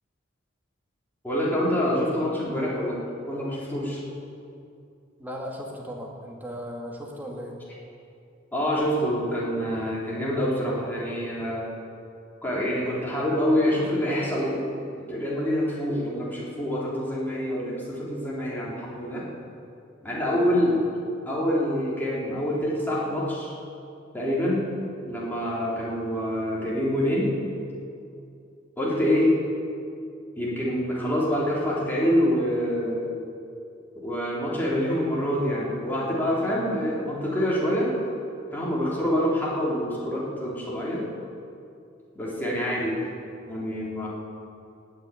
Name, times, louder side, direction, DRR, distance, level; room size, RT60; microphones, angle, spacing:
voice 1, 1.2-4.0 8.5-11.6 12.4-14.6 15.1-19.3 20.0-20.8 21.3-23.5 24.1-24.7 25.0-27.3 28.8-29.3 30.3-33.0 33.9-37.9 38.5-41.0 42.1-43.0 43.4-44.1, equal, 10° left, -6 dB, 3.4 m, -26 dB
voice 2, 5.2-7.6 36.4-36.7, equal, 10° right, -1 dB, 2.2 m, -37 dB
18.5 x 6.7 x 9.2 m, 2.5 s
head